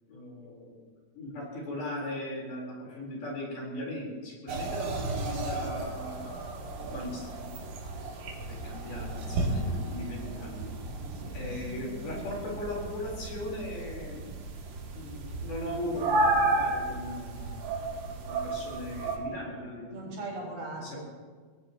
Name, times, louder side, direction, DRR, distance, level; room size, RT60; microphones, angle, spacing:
voice 1, 0.1-0.7 1.1-7.4 7.8-10.8 11.3-14.2 14.9-17.7 18.3-20.3 20.8-21.0, left 1 dB, 50° left, -3 dB, 5.6 m, -39 dB
sound 1, 4.5-19.2, right 2 dB, 85° right, 4.9 m, -33 dB
voice 2, 11.0-11.4 19.9-21.0, right 2 dB, 50° right, -4 dB, 5.7 m, -39 dB
23.5 x 16.5 x 3.0 m, 1.5 s
omnidirectional pair, 5.7 m